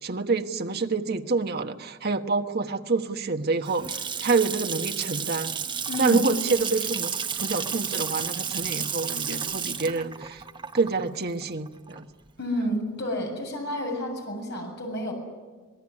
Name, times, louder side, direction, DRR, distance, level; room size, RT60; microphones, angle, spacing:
voice 1, 0.0-5.6 6.0-10.4 10.7-12.1, right 4 dB, 45° right, 6 dB, 1.3 m, -27 dB
Water tap faucet / Sink (filling or washing) / Splash splatter, 3.4-12.3, right 7 dB, 20° right, 1.1 m, -32 dB
voice 2, 5.9-6.3 12.4-15.1, equal, 50° left, 2 dB, 7.4 m, -29 dB
26.5 x 19.0 x 9.9 m, 1.4 s
head